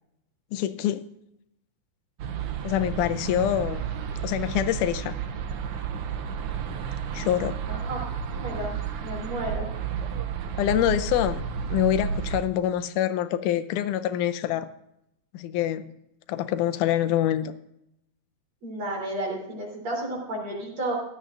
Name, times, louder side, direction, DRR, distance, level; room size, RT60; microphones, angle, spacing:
voice 1, 0.5-1.1 2.6-3.9 4.2-5.2 7.1-7.6 10.6-11.4 11.7-14.7 15.3-15.9 16.3-17.5, left 11 dB, 85° left, 11 dB, 2.2 m, -25 dB
sound 1, 2.2-12.4, right 7 dB, 90° right, 1.2 m, -32 dB
voice 2, 7.7-8.7 9.0-9.7 18.6-20.9, right 1 dB, 45° right, -1 dB, 4.1 m, -32 dB
15.5 x 12.0 x 2.5 m, 0.80 s
omnidirectional pair, 3.5 m